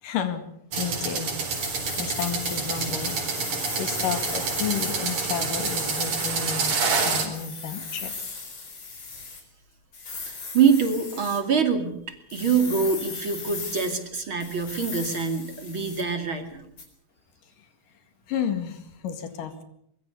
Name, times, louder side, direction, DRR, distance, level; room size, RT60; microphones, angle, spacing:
voice 1, 0.0-0.4 0.8-1.3 2.0-3.2 3.8-8.2 17.6-17.7 18.3-19.6, left 8 dB, 75° left, 9 dB, 3.6 m, -31 dB
sound 1, 0.7-7.3, right 4 dB, 60° right, 5.4 m, -27 dB
sound 2, 1.5-6.3 7.3-9.4 9.9-11.4 12.3-14.0 14.4-16.1 16.8-16.9, left 4 dB, 50° left, 5.5 m, -37 dB
voice 2, 10.3-12.0 12.3-16.7, right 6 dB, 40° right, 6 dB, 2.9 m, -24 dB
23.5 x 22.0 x 6.9 m, 0.72 s
omnidirectional pair, 3.8 m